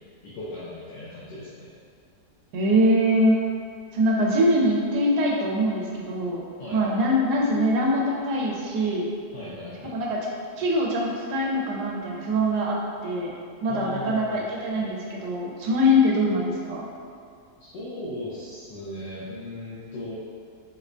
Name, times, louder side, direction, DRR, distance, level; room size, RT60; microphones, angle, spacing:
voice 1, 0.2-1.7 6.6-6.8 9.3-10.0 13.7-14.4 17.6-20.1, left 1 dB, 90° left, -9 dB, 1.2 m, -37 dB
voice 2, 2.5-3.4 3.9-6.4 6.7-9.1 9.9-10.2 10.6-12.8 13.0-13.3 13.6-16.8, equal, 80° right, -3 dB, 1.2 m, -23 dB
4.5 x 2.1 x 2.5 m, 2.2 s
omnidirectional pair, 1.7 m